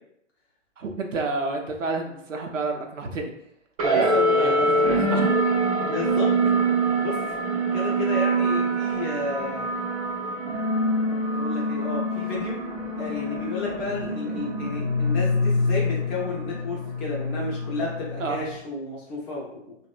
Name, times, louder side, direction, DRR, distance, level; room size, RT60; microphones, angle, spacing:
voice 1, 0.8-3.3 3.8-5.3 18.2-18.4, right 3 dB, 90° right, 3 dB, 0.6 m, -30 dB
sound 1, 3.8-18.5, right 1 dB, 30° right, 0.4 m, -25 dB
voice 2, 3.9-5.1 5.8-6.3 7.0-7.2 7.7-9.7 11.1-12.6 12.9-19.8, left 2 dB, 20° left, -5 dB, 0.5 m, -32 dB
2.8 x 2.0 x 2.4 m, 0.75 s
figure-of-eight pair, 125°, 37 cm